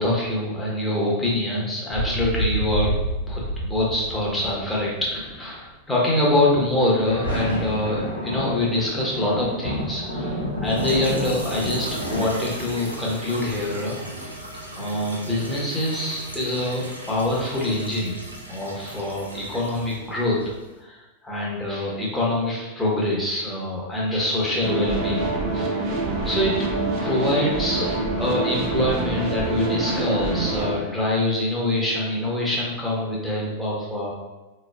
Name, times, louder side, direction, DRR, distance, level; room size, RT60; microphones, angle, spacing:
voice 1, 0.0-3.0 3.3-14.3 14.7-18.2 18.5-25.3 25.5-25.7 26.2-26.6 27.0-27.9 28.2-34.1, left 1 dB, 5° left, -5 dB, 1.1 m, -25 dB
sound 1, 1.9-5.5 6.7-12.2, equal, 75° left, 0.9 m, -29 dB
sound 2, 10.6-20.8, right 1 dB, 80° right, 0.5 m, -36 dB
sound 3, 24.6-30.7, right 2 dB, 40° right, 0.7 m, -26 dB
4.2 x 3.1 x 2.3 m, 1.1 s
figure-of-eight pair, 90°, 0 cm